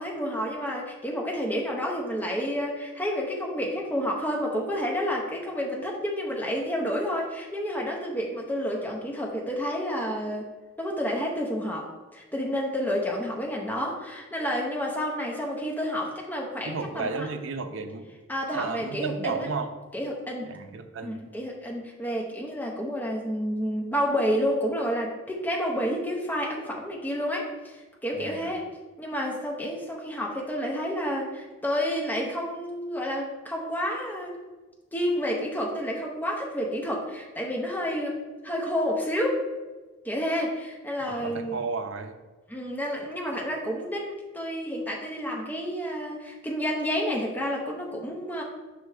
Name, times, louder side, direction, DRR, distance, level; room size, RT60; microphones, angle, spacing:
voice 1, 0.0-10.5 10.8-17.3 18.3-19.5 19.9-20.5 21.0-28.6 29.0-34.4 34.9-39.4 40.0-41.6 42.5-48.4, equal, 10° left, -1 dB, 0.8 m, -30 dB
voice 2, 16.7-18.1 18.5-19.7 20.5-21.3 28.1-28.6 41.1-42.2, right 4 dB, 65° right, 7 dB, 0.5 m, -33 dB
5.6 x 3.4 x 4.9 m, 1.2 s
head